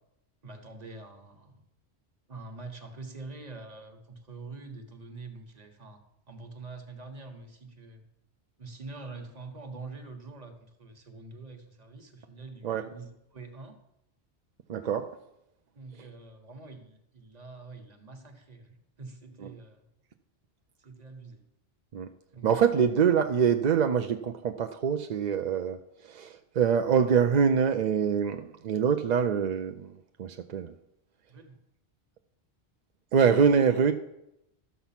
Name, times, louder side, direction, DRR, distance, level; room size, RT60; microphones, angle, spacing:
voice 1, 0.4-1.6 2.3-8.0 8.6-13.7 15.7-19.9 20.8-21.4 22.3-22.9 31.3-31.6, right 3 dB, 40° right, 5 dB, 1.2 m, -45 dB
voice 2, 14.7-15.2 21.9-22.1 22.4-30.7 33.1-33.9, right 7 dB, 55° right, 6 dB, 0.5 m, -25 dB
12.5 x 7.0 x 5.8 m, 0.86 s
omnidirectional pair, 1.1 m